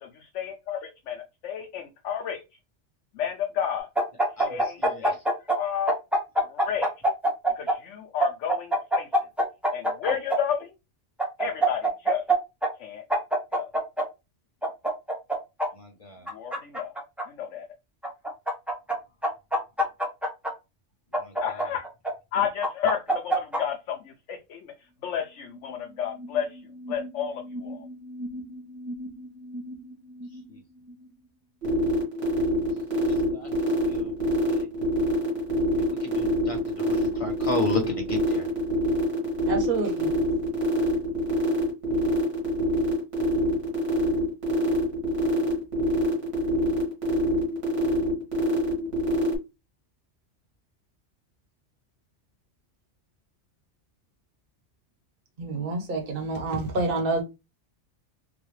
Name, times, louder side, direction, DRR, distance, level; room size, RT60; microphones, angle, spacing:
voice 1, 0.0-2.4 3.1-3.9 4.5-5.2 5.6-5.9 6.5-6.9 7.6-9.1 9.7-10.7 11.4-12.2 12.8-13.0 13.5-13.7 16.3-16.9 17.3-17.7 21.4-21.9 22.3-24.7 25.0-26.6 26.9-27.8, left 8 dB, 80° left, 1.0 m, -31 dB
sound 1, 3.9-5.6 5.9-7.7 8.2-10.4 11.2-12.3 12.6-12.7 13.1-14.0 14.6-15.7 16.3-17.2 18.0-18.9 19.2-20.5 21.1-22.1 22.6-23.6, right 1 dB, ahead, 0.8 m, -24 dB
voice 2, 4.4-5.2 15.7-16.3 21.1-21.7 30.5-30.6 33.1-34.1 34.5-34.7 35.7-38.5, left 3 dB, 30° left, 0.8 m, -35 dB
sound 2, 25.0-25.1 25.4-31.1, equal, 25° right, 0.4 m, -41 dB
sound 3, 31.6-49.3, right 1 dB, 80° right, 1.9 m, -26 dB
voice 3, 39.5-40.1 55.4-57.2, right 3 dB, 50° right, 1.2 m, -28 dB
4.0 x 2.2 x 3.1 m
omnidirectional pair, 1.2 m